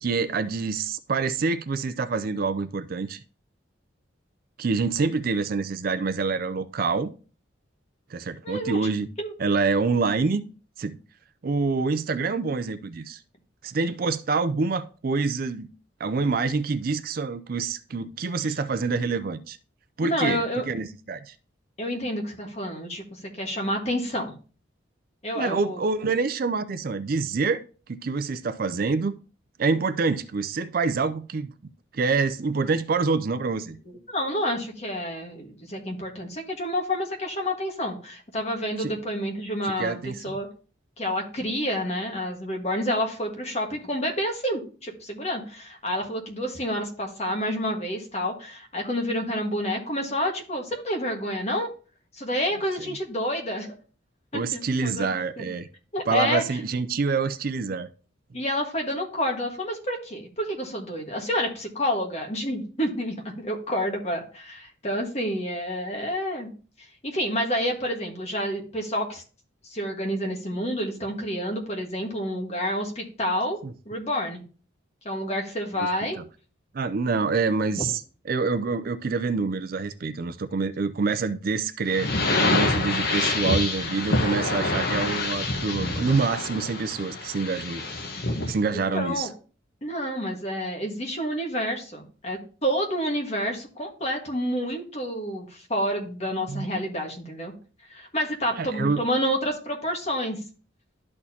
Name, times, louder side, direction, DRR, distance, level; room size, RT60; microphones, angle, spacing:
voice 1, 0.0-3.2 4.6-7.1 8.1-9.1 9.4-10.4 10.8-11.0 11.4-13.2 13.6-15.7 16.0-19.6 20.0-21.3 25.3-27.6 27.9-29.2 29.6-31.5 31.9-33.8 38.8-39.0 39.8-40.2 52.8-53.0 54.3-55.7 56.1-57.9 73.6-73.7 75.8-75.9 76.2-76.3 76.7-82.1 82.5-87.8 88.5-89.3 96.5-96.7 98.6-99.0, right 4 dB, 45° right, 0.4 m, -26 dB
voice 2, 8.4-8.9 9.2-9.3 20.0-20.7 21.8-24.3 25.2-25.9 33.9-40.5 41.0-51.7 52.1-53.7 54.3-55.1 55.4-55.5 55.9-56.4 58.3-66.5 67.0-69.2 69.7-73.6 73.8-74.4 75.0-76.2 77.8-77.9 88.9-89.3 89.8-97.5 97.9-100.4, equal, 35° left, 1.6 m, -29 dB
sound 1, 81.9-88.6, left 2 dB, 50° left, 1.1 m, -26 dB
12.0 x 4.3 x 2.8 m
head